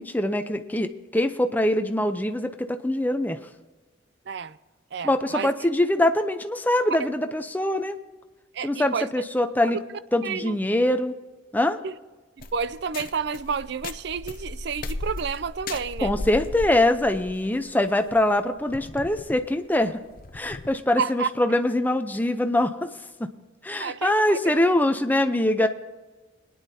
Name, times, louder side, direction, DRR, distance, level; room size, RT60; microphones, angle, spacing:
voice 1, 0.0-3.4 5.0-7.9 8.6-9.8 10.1-11.1 11.5-11.8 16.0-20.0 20.3-22.9 23.6-25.7, left 1 dB, 10° left, 0.6 m, -23 dB
voice 2, 4.3-4.6 4.9-5.5 8.5-9.1 9.9-10.5 11.8-11.9 12.4-16.2 21.0-21.3 23.8-24.4, right 6 dB, 55° right, 0.4 m, -30 dB
sound 1, 12.4-20.7, left 2 dB, 45° left, 0.6 m, -37 dB
21.5 x 10.0 x 2.8 m
head